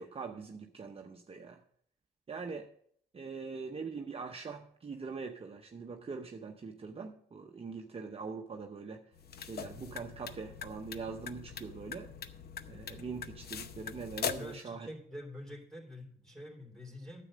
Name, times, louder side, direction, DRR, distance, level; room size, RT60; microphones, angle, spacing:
voice 1, 0.0-1.6 2.3-2.7 3.1-9.0 9.4-12.1 12.7-14.9, right 5 dB, 30° right, 4 dB, 0.8 m, -43 dB
sound 1, 9.1-14.6, left 7 dB, 55° left, 0.7 m, -42 dB
voice 2, 14.3-17.2, left 1 dB, 5° left, 2 dB, 2.9 m, -46 dB
9.7 x 7.6 x 5.1 m, 0.62 s
cardioid pair, 90°, 20 cm